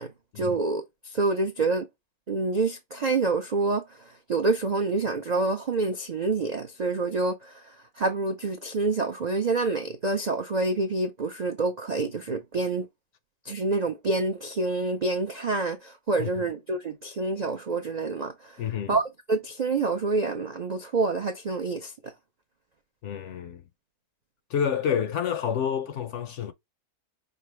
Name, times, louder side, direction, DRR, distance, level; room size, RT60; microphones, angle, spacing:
voice 1, 0.0-1.9 2.3-12.9 13.4-18.6 18.9-22.1, right 3 dB, 75° right, 0.3 m, -27 dB
voice 2, 18.6-19.0 23.0-23.6 24.5-26.5, left 8 dB, 70° left, 0.7 m, -29 dB
5.6 x 2.4 x 3.2 m
omnidirectional pair, 1.6 m